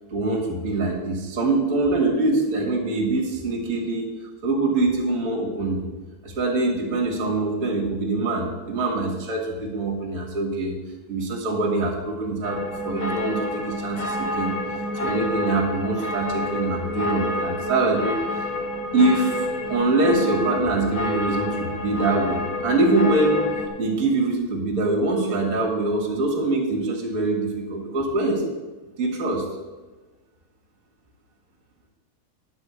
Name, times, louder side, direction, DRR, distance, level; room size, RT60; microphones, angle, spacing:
voice 1, 0.1-4.1 4.4-5.8 6.2-10.7 11.1-14.5 15.0-18.2 18.9-19.4 19.7-23.4 23.8-28.4 29.0-29.4, right 2 dB, 30° right, 0 dB, 2.0 m, -24 dB
sound 1, 12.4-23.7, left 1 dB, 65° left, 0.8 m, -29 dB
9.5 x 5.5 x 8.2 m, 1.2 s
omnidirectional pair, 3.5 m